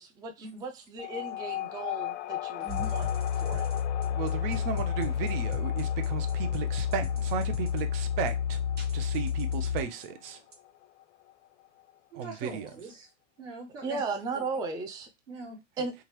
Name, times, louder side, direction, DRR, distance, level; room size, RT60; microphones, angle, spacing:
voice 1, 0.0-3.1 3.3-3.7 13.8-15.1 15.8-15.9, right 4 dB, 10° right, 0.3 m, -36 dB
sound 1, 1.0-11.9, left 14 dB, 70° left, 0.5 m, -40 dB
voice 2, 2.6-2.9 12.1-13.1 13.4-14.0 15.3-15.6, right 2 dB, 90° right, 1.3 m, -42 dB
sound 2, 2.7-10.5, left 8 dB, 30° right, 0.9 m, -30 dB
voice 3, 4.1-8.6 8.9-10.4 12.1-12.7, right 7 dB, 55° right, 0.6 m, -35 dB
3.0 x 2.4 x 2.9 m
hypercardioid pair, 95°, 36 cm